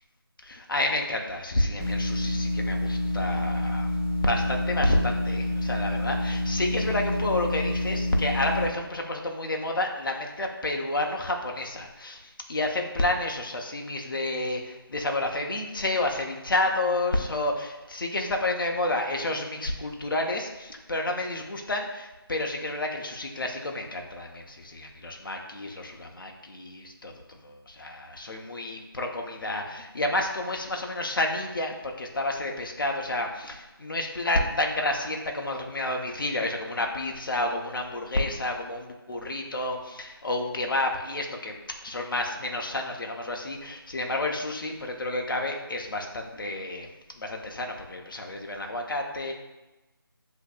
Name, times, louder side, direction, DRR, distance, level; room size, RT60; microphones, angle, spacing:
voice 1, 0.4-3.9 4.2-41.6 41.8-46.9 47.1-49.3, left 2 dB, 60° left, 2 dB, 0.7 m, -30 dB
sound 1, 1.8-8.6, left 1 dB, 5° left, 1.3 m, -28 dB
8.0 x 2.8 x 2.3 m, 1.1 s
figure-of-eight pair, 165°, 13 cm